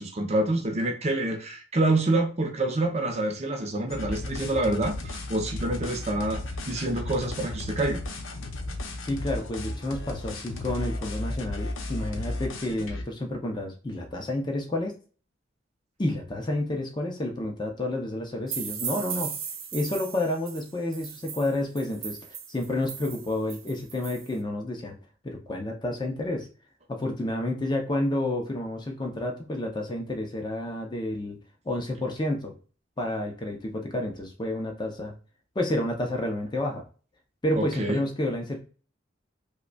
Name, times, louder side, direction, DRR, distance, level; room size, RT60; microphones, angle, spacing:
voice 1, 0.0-8.0 37.6-38.0, right 2 dB, 35° right, 0.5 m, -27 dB
sound 1, 3.9-13.0, left 2 dB, 90° left, 0.6 m, -34 dB
voice 2, 9.0-14.9 16.0-19.4 19.7-22.2 22.5-25.0 25.2-26.5 26.9-31.4 31.7-32.5 33.0-35.1 35.6-36.8 37.4-38.6, left 1 dB, 20° left, 0.5 m, -30 dB
sound 2, 18.5-24.3, right 8 dB, 90° right, 0.6 m, -37 dB
5.0 x 2.1 x 2.2 m
head